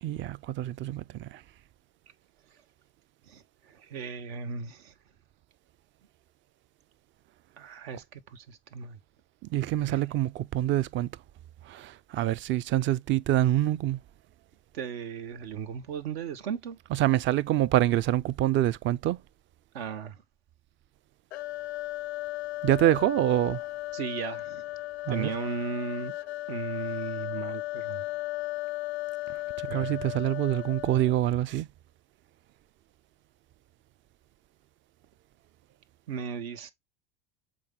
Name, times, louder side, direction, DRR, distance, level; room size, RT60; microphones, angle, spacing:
voice 1, 0.0-1.3 9.5-11.1 11.7-14.0 17.0-19.2 22.6-23.6 25.1-25.3 29.7-31.7, right 13 dB, 40° right, 0.5 m, -26 dB
voice 2, 3.3-4.9 7.6-9.0 9.9-10.0 14.7-16.8 19.7-20.2 23.9-24.7 25.1-26.1 26.5-28.0 29.7-30.1 36.1-36.7, right 6 dB, 80° right, 1.2 m, -36 dB
sound 1, 21.3-31.2, left 18 dB, 90° left, 0.6 m, -36 dB
7.6 x 4.1 x 3.6 m
hypercardioid pair, 90°, 31 cm